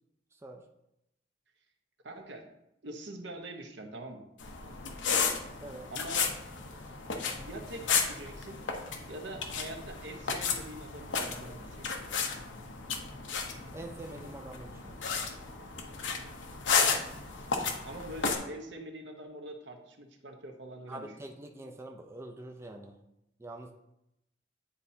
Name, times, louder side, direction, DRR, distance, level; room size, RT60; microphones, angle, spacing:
voice 1, 0.3-0.6 5.6-5.9 13.7-15.3 20.9-23.0 23.4-23.7, right 1 dB, 15° right, 2 dB, 0.4 m, -45 dB
voice 2, 2.0-2.4 2.8-4.3 5.9-6.2 7.4-8.6 9.0-11.9 17.8-21.1, right 1 dB, 70° right, 3 dB, 0.9 m, -44 dB
sound 1, 4.4-18.4, left 5 dB, 85° left, 0.8 m, -33 dB
9.8 x 4.2 x 2.7 m, 0.85 s
head